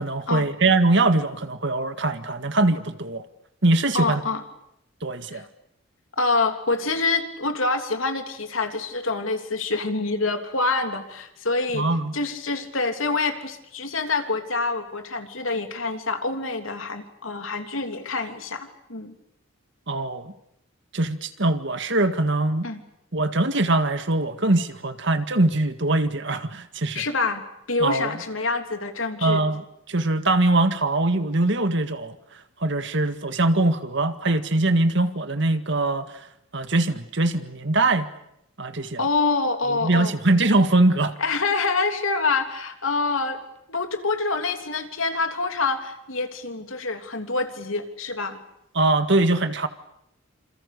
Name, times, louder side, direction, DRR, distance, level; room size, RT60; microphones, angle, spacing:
voice 1, 0.0-3.2 3.6-4.2 5.0-5.4 11.7-12.2 19.9-20.3 20.9-22.7 23.1-27.0 27.8-28.1 29.2-32.2 32.6-36.1 36.5-38.1 38.6-39.0 39.7-41.1 48.8-49.7, right 2 dB, 60° right, 9 dB, 1.9 m, -22 dB
voice 2, 3.9-4.4 5.3-5.4 6.2-11.9 12.1-19.1 22.6-22.8 26.9-27.4 27.7-29.4 39.0-40.1 41.2-43.4 43.7-48.4, left 3 dB, 75° left, 6 dB, 3.3 m, -26 dB
28.0 x 28.0 x 6.8 m, 0.78 s
head